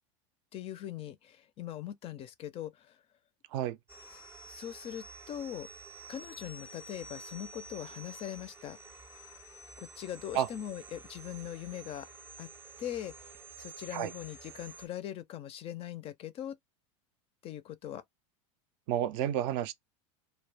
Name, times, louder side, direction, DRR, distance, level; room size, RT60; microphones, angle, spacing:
voice 1, 0.5-3.0 4.1-4.2 4.5-5.7 6.1-8.8 9.8-12.1 12.4-12.5 12.8-16.6 17.4-18.0, left 11 dB, 35° left, 0.4 m, -41 dB
sound 1, 3.9-14.9, right 3 dB, 15° right, 0.6 m, -50 dB
voice 2, 18.9-19.7, right 11 dB, 60° right, 0.4 m, -30 dB
2.1 x 2.0 x 3.2 m
supercardioid pair, 115°, 17 cm